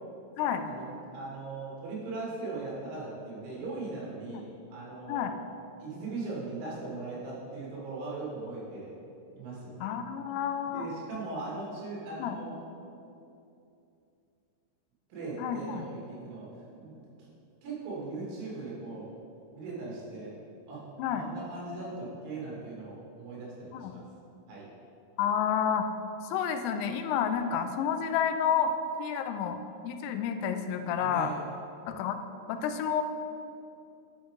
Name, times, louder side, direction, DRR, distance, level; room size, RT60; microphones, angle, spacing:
voice 1, 0.4-0.8 1.1-5.3 5.8-8.9 9.4-9.8 10.6-12.6 15.1-16.5 16.8-17.3 17.6-19.1 19.5-20.3 20.7-24.0 24.5-24.7 31.0-31.4, right 3 dB, 70° right, -6 dB, 4.5 m, -39 dB
voice 2, 9.8-10.9 12.2-12.4 15.4-15.9 21.0-21.2 23.7-23.9 25.2-25.9 26.2-28.7 29.0-31.3 31.9-32.2 32.5-33.0, left 8 dB, 85° left, 8 dB, 3.1 m, -30 dB
9.7 x 6.3 x 3.6 m, 2.7 s
omnidirectional pair, 5.8 m